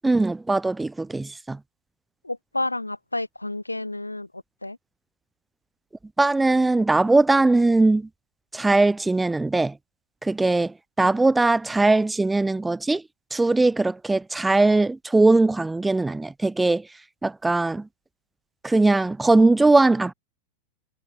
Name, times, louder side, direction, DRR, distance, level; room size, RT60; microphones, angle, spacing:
voice 1, 0.0-1.6 6.2-8.1 8.5-9.8 10.2-13.0 13.3-16.9 17.2-17.9 18.6-20.1, right 2 dB, 10° right, 0.5 m, -20 dB
voice 2, 2.2-4.8, left 2 dB, 85° left, 1.3 m, -30 dB
figure-of-eight pair, 90°, 0 cm